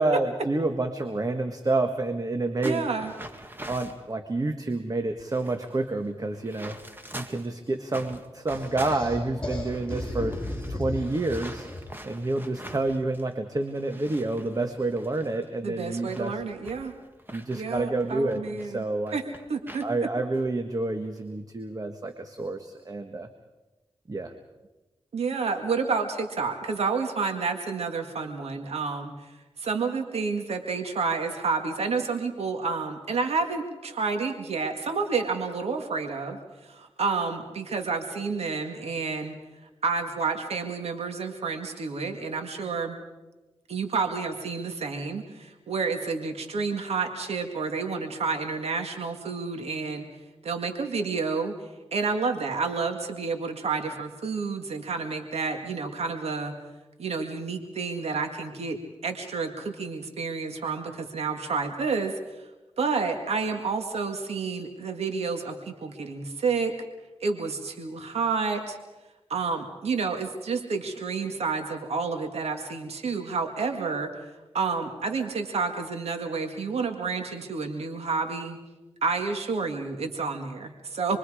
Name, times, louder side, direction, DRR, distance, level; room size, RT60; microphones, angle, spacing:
voice 1, 0.0-2.8 3.7-6.8 7.1-10.3 10.7-11.7 12.0-16.3 17.3-19.2 19.8-23.3 24.1-24.3, right 2 dB, 35° right, 6 dB, 1.6 m, -28 dB
sound 1, 2.6-4.0 4.7-4.8 5.1-7.5 7.9-13.3 13.6-18.7 19.1-19.9 20.3-20.5 21.0-21.3, right 1 dB, 20° right, 2.0 m, -45 dB
voice 2, 2.6-3.1 15.6-16.9 17.5-18.8 19.1-19.2 19.5-19.8 25.1-29.1 29.6-39.4 39.8-43.0 43.7-50.1 50.4-51.5 51.9-56.5 57.0-58.8 59.0-62.2 62.8-66.7 67.2-68.8 69.3-74.1 74.5-78.6 79.0-81.2, right 4 dB, 90° right, 5 dB, 1.9 m, -29 dB
sound 2, 8.5-12.0, left 1 dB, 10° left, 7.6 m, -35 dB
27.5 x 22.5 x 5.0 m, 1.1 s
cardioid pair, 65°, 10 cm